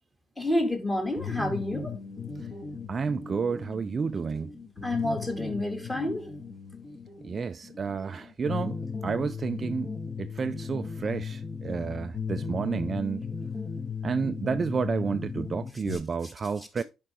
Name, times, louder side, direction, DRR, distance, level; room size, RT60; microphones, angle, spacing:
voice 1, 0.4-2.0 4.8-6.3 15.9-16.0 16.8-16.9, left 1 dB, 10° left, 2.5 m, -29 dB
sound 1, 1.2-15.9, left 5 dB, 30° left, 1.7 m, -37 dB
voice 2, 2.9-4.6 7.2-9.9 10.2-13.3 14.0-16.8, right 5 dB, 30° right, 0.4 m, -30 dB
11.0 x 5.1 x 3.6 m
cardioid pair, 125°, 0 cm